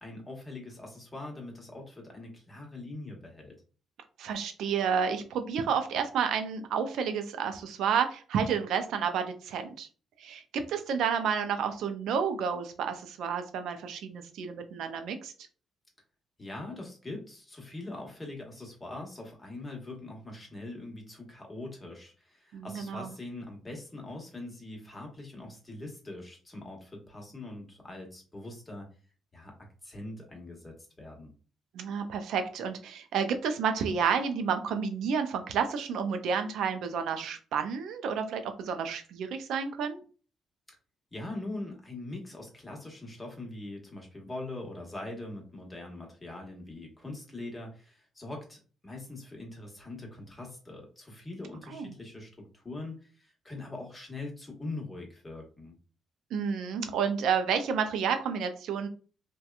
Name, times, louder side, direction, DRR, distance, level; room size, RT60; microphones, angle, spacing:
voice 1, 0.0-3.6 16.4-28.9 29.3-29.5 29.8-31.3 41.1-55.7, left 2 dB, 20° left, 0 dB, 1.0 m, -42 dB
voice 2, 4.2-9.9 10.2-15.3 22.5-23.1 31.7-40.0 51.7-51.9 56.3-58.9, right 6 dB, 80° right, 7 dB, 0.3 m, -30 dB
2.8 x 2.2 x 2.3 m, 0.38 s
cardioid pair, 90°, 0 cm